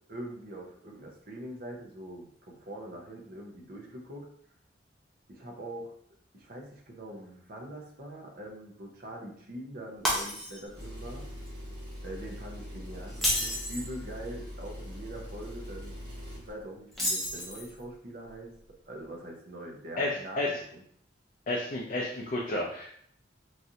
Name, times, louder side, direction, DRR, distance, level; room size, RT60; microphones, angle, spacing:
voice 1, 0.1-4.3 5.3-5.9 6.3-11.3 12.0-16.0 16.4-18.5 18.9-20.8, right 1 dB, 50° right, 0 dB, 0.7 m, -43 dB
Shatter, 10.0-10.8 11.2-11.5 13.1-13.9 16.9-17.8, equal, ahead, 0.6 m, -30 dB
Engine, 10.7-16.5, equal, 75° right, 1.4 m, -42 dB
voice 2, 20.0-20.6 21.5-22.9, left 1 dB, 45° left, -2 dB, 0.4 m, -31 dB
3.1 x 2.6 x 2.7 m, 0.64 s
head